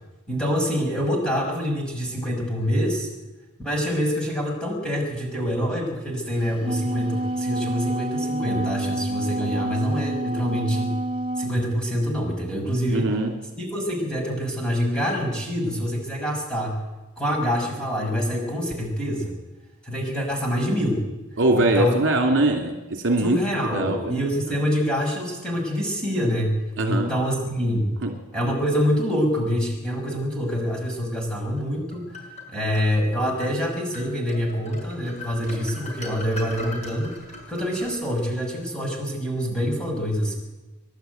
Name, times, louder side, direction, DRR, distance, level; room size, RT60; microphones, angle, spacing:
voice 1, 0.3-3.1 3.6-11.0 11.4-13.1 13.6-16.8 17.2-19.4 19.8-21.0 21.6-22.0 23.2-26.6 26.9-27.9 28.3-32.2 32.5-37.1 37.5-40.3, equal, 5° left, 0 dB, 5.9 m, -26 dB
Wind instrument woodwind instrument, 6.4-11.6, right 1 dB, 25° right, 1.4 m, -28 dB
voice 2, 12.9-13.3 21.4-23.4 23.7-24.0 26.8-27.1 28.0-28.1, right 2 dB, 60° right, 3 dB, 2.8 m, -21 dB
sound 1, 31.6-32.9 33.4-33.6 33.9-38.4, left 1 dB, 30° left, 5.9 m, -40 dB
26.5 x 12.0 x 9.3 m, 1.1 s
head